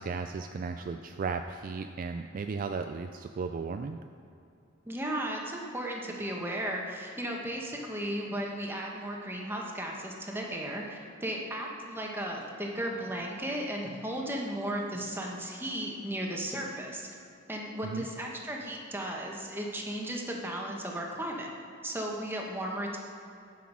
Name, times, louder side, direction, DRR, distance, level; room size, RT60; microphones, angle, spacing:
voice 1, 0.0-4.0 17.8-18.1, right 4 dB, 45° right, 7 dB, 0.3 m, -35 dB
voice 2, 4.9-17.1 17.5-21.5 21.8-23.0, right 1 dB, 10° right, -1 dB, 1.2 m, -35 dB
9.4 x 6.1 x 6.2 m, 2.7 s
head